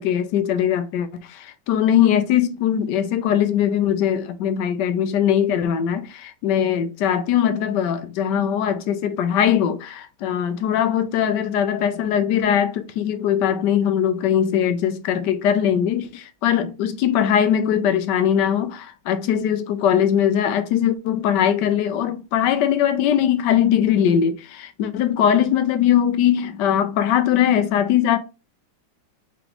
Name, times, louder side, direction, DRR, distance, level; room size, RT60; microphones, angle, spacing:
voice 1, 0.0-28.2, left 9 dB, 70° left, 1.1 m, -20 dB
4.9 x 3.6 x 2.9 m
omnidirectional pair, 2.2 m